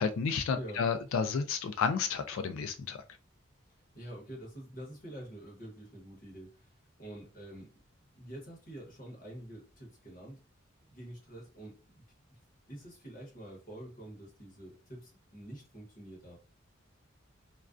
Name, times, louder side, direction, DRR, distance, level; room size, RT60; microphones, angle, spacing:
voice 1, 0.0-3.0, left 5 dB, 85° left, 0.3 m, -31 dB
voice 2, 0.5-0.9 3.9-7.8 8.1-10.4 10.9-12.0 12.3-12.4 12.7-16.4, right 1 dB, 40° left, 0.9 m, -47 dB
2.3 x 2.2 x 2.4 m
head